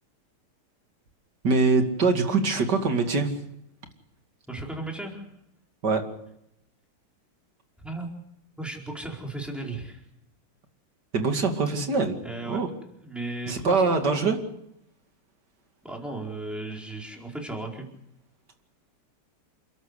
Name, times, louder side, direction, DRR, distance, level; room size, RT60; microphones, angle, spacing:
voice 1, 1.4-3.3 5.8-6.0 11.1-12.2 12.5-12.7 13.5-14.4, right 4 dB, 50° right, 5 dB, 2.9 m, -23 dB
voice 2, 4.5-5.3 7.8-8.1 8.6-10.0 12.2-12.6 13.0-14.2 15.8-17.9, right 2 dB, ahead, 0 dB, 4.5 m, -35 dB
29.0 x 12.5 x 8.2 m, 0.79 s
omnidirectional pair, 2.4 m